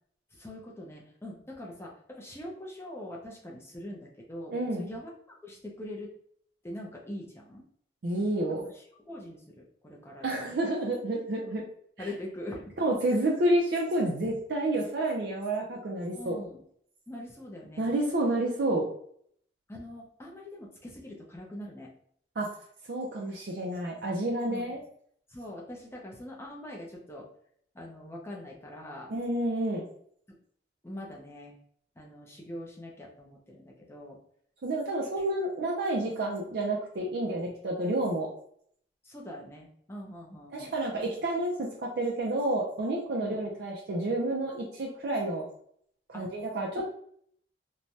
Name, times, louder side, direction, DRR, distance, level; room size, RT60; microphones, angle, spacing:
voice 1, 0.3-6.1 6.6-7.7 8.7-10.5 11.4-11.6 12.0-12.8 16.1-16.6 17.1-17.9 19.7-21.9 24.5-24.8 25.3-27.3 27.7-29.1 30.8-31.6 32.0-34.2 35.2-35.3 37.2-37.5 39.0-40.7 43.2-43.4 46.1-46.3, left 1 dB, 15° left, -2 dB, 0.5 m, -43 dB
voice 2, 4.5-4.9 8.0-8.6 10.2-11.6 12.0-12.1 12.8-16.4 17.8-18.9 22.4-22.5 22.9-24.8 29.1-29.9 34.6-38.3 40.5-45.4 46.1-46.8, right 1 dB, 65° right, -2 dB, 0.4 m, -29 dB
3.1 x 2.2 x 2.6 m, 0.65 s
head